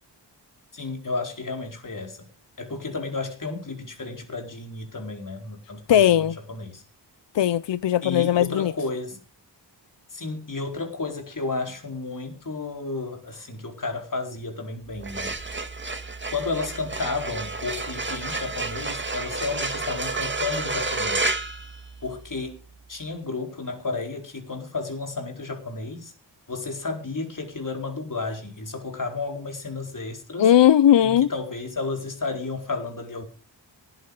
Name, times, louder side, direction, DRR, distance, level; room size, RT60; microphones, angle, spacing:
voice 1, 0.7-2.3 2.6-6.8 8.0-9.2 10.1-15.3 16.3-21.3 22.0-22.6 22.9-26.1 26.5-30.5 31.0-33.2, left 3 dB, 45° left, 4.4 m, -32 dB
voice 2, 5.9-6.3 7.3-8.7 30.4-31.3, left 10 dB, 80° left, 0.6 m, -18 dB
sound 1, 14.9-22.4, right 3 dB, 25° right, 1.9 m, -30 dB
17.5 x 9.5 x 5.4 m
wide cardioid pair, 110°, 43 cm